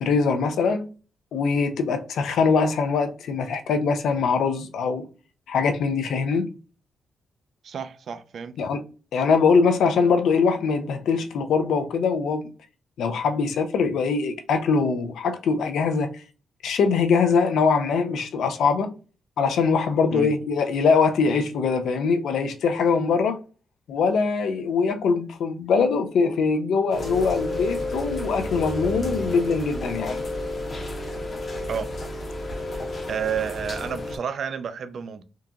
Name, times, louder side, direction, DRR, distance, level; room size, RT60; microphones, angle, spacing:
voice 1, 0.0-0.9 1.3-5.1 5.5-6.5 8.6-8.8 9.1-12.4 13.0-16.1 16.6-18.9 19.4-23.4 23.9-30.2, left 5 dB, 70° left, 0.4 m, -22 dB
voice 2, 7.6-8.5 20.1-20.3 31.7-31.9 32.7-32.8 33.1-35.2, right 7 dB, 50° right, 0.3 m, -30 dB
Rain, 26.9-34.2, left 1 dB, 30° left, 0.7 m, -31 dB
3.6 x 2.8 x 2.4 m
wide cardioid pair, 175°, 0 cm